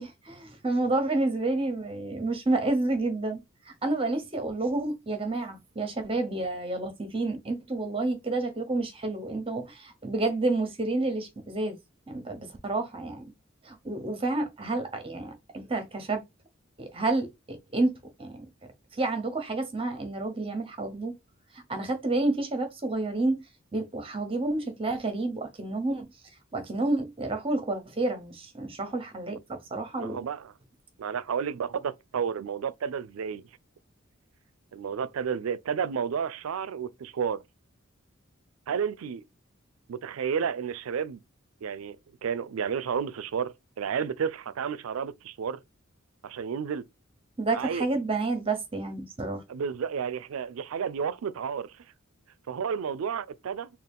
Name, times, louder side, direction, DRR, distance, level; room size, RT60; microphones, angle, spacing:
voice 1, 0.0-3.4 3.7-11.8 12.1-13.3 13.6-16.2 16.8-17.9 18.2-18.5 18.9-21.1 21.7-23.4 23.7-26.1 26.5-30.2 47.4-49.4, right 2 dB, 25° right, 1.0 m, -29 dB
voice 2, 30.0-30.5 31.0-33.4 34.7-37.4 38.7-39.2 39.9-41.2 41.6-42.0 42.2-45.6 46.2-46.8 47.5-47.8 49.5-51.8 52.5-53.7, right 7 dB, 90° right, 0.4 m, -31 dB
3.7 x 2.4 x 3.5 m
head